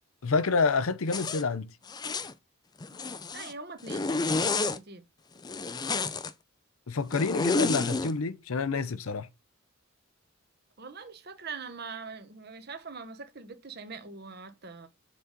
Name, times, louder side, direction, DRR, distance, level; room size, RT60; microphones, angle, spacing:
voice 1, 0.2-1.7 6.9-9.3, left 4 dB, 85° left, 0.6 m, -28 dB
Zipper (clothing), 1.1-1.4 1.9-2.3 2.8-3.5 3.9-4.8 5.4-6.3 7.1-8.1, left 3 dB, 20° left, 0.4 m, -30 dB
voice 2, 3.3-4.1 4.7-5.0 10.8-14.9, right 4 dB, 50° right, 1.1 m, -42 dB
6.7 x 4.1 x 5.2 m
head